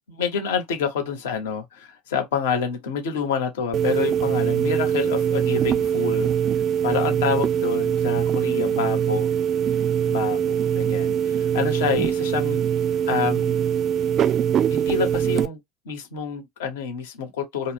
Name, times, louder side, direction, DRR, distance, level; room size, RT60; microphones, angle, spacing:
voice 1, 0.2-6.3 6.8-9.3 10.1-12.6 13.1-13.6 14.7-15.6 15.8-17.7, left 6 dB, 70° left, 0.9 m, -27 dB
sound 1, 3.7-15.5, right 9 dB, 40° right, 0.4 m, -22 dB
2.3 x 2.0 x 3.2 m
figure-of-eight pair, 70°, 0 cm